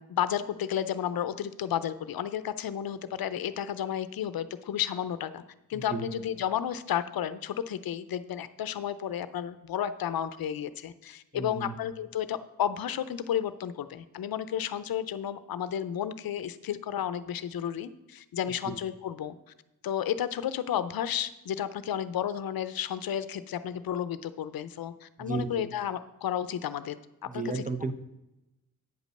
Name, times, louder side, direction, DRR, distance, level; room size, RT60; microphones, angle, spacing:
voice 1, 0.0-5.4 5.7-19.3 19.8-27.0 27.3-27.6, left 10 dB, 85° left, 13 dB, 0.6 m, -32 dB
voice 2, 5.7-6.1 11.3-11.7 25.2-25.5 27.3-27.9, right 4 dB, 25° right, 9 dB, 0.8 m, -33 dB
9.3 x 5.2 x 6.4 m, 0.95 s
cardioid pair, 75°, 35 cm